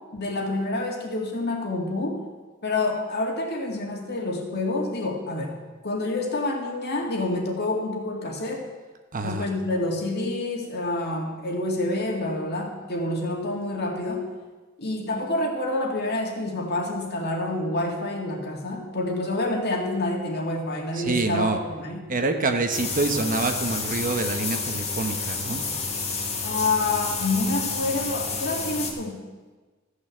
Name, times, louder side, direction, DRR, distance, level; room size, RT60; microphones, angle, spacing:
voice 1, 0.1-2.2 2.6-5.5 5.8-8.7 9.2-14.2 14.8-22.0 26.4-29.2, left 2 dB, 50° left, 1 dB, 2.2 m, -28 dB
voice 2, 9.1-9.5 20.9-21.6 22.1-25.7, right 3 dB, 40° right, 6 dB, 1.0 m, -26 dB
sound 1, 22.7-28.9, left 4 dB, 30° left, 1.8 m, -30 dB
14.0 x 6.5 x 7.7 m, 1.3 s
head